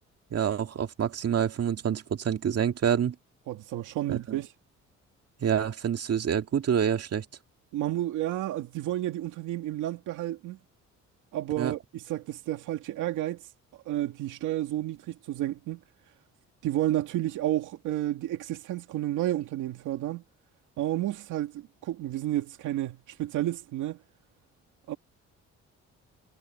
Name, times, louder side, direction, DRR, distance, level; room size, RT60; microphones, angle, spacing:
voice 1, 0.3-3.2 4.1-4.4 5.4-7.3 11.6-11.7, right 8 dB, 55° right, 2.2 m, -27 dB
voice 2, 3.5-4.5 7.7-10.6 11.3-13.5 13.9-15.8 16.6-20.2 20.8-24.0 24.9-25.0, right 14 dB, 90° right, 2.2 m, -31 dB
cardioid pair, 90°, 30 cm